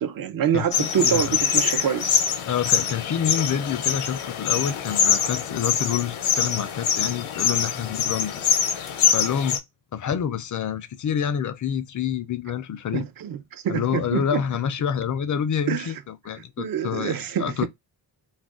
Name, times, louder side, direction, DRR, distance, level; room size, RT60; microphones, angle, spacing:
voice 1, 0.0-2.2 12.9-14.4 15.7-16.0 16.3-17.7, right 9 dB, 50° right, 0.5 m, -26 dB
voice 2, 0.5-1.3 2.5-8.4 9.1-9.6 9.9-13.1 13.7-17.7, left 8 dB, 40° left, 0.4 m, -27 dB
sound 1, 0.7-9.6, left 8 dB, 80° left, 0.7 m, -24 dB
2.5 x 2.2 x 3.5 m
cardioid pair, 105°, 48 cm